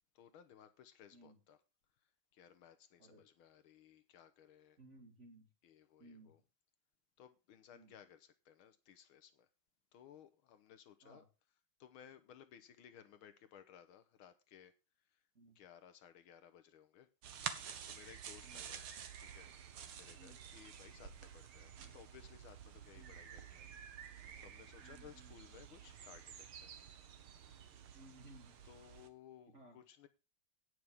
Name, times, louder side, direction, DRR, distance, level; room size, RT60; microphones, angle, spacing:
voice 1, 0.2-1.6 2.3-4.8 5.6-6.4 7.2-9.5 9.9-11.3 11.8-14.7 15.1-15.2 15.6-17.1 17.5-18.8 19.2-19.5 19.9-26.7 27.3-27.6 28.6-30.1, left 9 dB, 80° left, 1.7 m, -60 dB
voice 2, 4.8-5.5 6.0-6.3 7.7-7.9 11.0-11.3 15.4-15.6 18.4-18.6 20.2-20.4 21.8-22.0 22.9-23.2 24.8-25.3 27.9-28.6 29.5-29.8, right 2 dB, 35° right, 3.3 m, -60 dB
sound 1, 17.2-29.1, right 8 dB, 80° right, 2.1 m, -50 dB
18.0 x 6.3 x 3.6 m
omnidirectional pair, 2.3 m